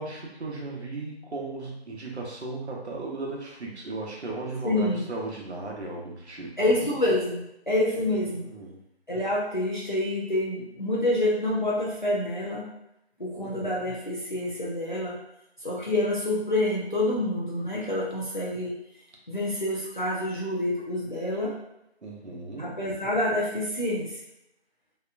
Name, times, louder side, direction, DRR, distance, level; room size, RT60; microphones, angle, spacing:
voice 1, 0.0-6.9 8.3-8.8 13.4-13.9 22.0-22.8, right 2 dB, 80° right, -2 dB, 0.8 m, -36 dB
voice 2, 4.6-5.0 6.6-8.5 9.1-12.7 13.2-15.2 15.6-18.7 19.3-21.5 22.6-24.1, left 1 dB, 45° left, -5 dB, 0.5 m, -27 dB
2.8 x 2.2 x 2.4 m, 0.81 s
figure-of-eight pair, 180°, 33 cm